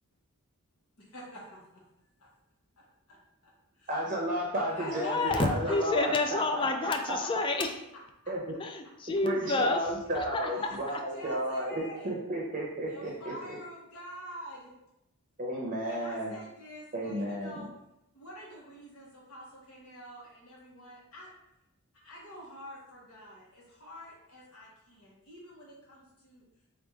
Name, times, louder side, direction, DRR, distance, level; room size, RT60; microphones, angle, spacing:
voice 1, 1.0-1.8 2.2-2.3 2.8-3.2 3.4-3.8 4.7-7.0 10.5-12.1 12.9-14.7 15.9-17.7 18.1-21.3 21.9-26.4, equal, 70° left, -4 dB, 1.2 m, -47 dB
voice 2, 3.9-7.2 8.3-8.4 9.2-11.7 12.0-13.3 15.4-16.3 16.9-17.6, right 1 dB, 35° right, -3 dB, 0.7 m, -33 dB
voice 3, 4.9-7.7 8.6-9.8 10.3-10.5, left 3 dB, 20° left, 4 dB, 0.3 m, -29 dB
3.4 x 2.4 x 4.4 m, 0.85 s
head